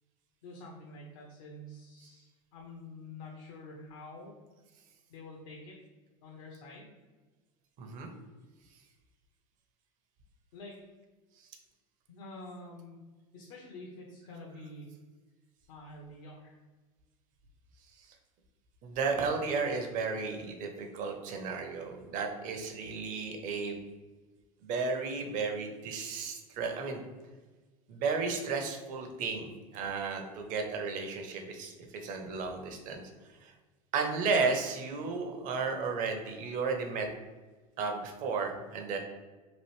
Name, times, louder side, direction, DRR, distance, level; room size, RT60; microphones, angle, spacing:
voice 1, 0.4-4.3 5.1-5.8 6.2-6.9 10.5-10.8 12.1-13.0 13.3-14.9 15.7-16.6, left 2 dB, 65° left, -1 dB, 0.7 m, -47 dB
voice 2, 7.8-8.1 18.0-18.1 18.8-23.8 24.6-27.0 27.9-33.0 33.4-33.5 33.9-37.1 37.8-39.0, right 4 dB, 50° right, 4 dB, 0.7 m, -33 dB
3.0 x 2.5 x 3.1 m, 1.3 s
hypercardioid pair, 85°, 17 cm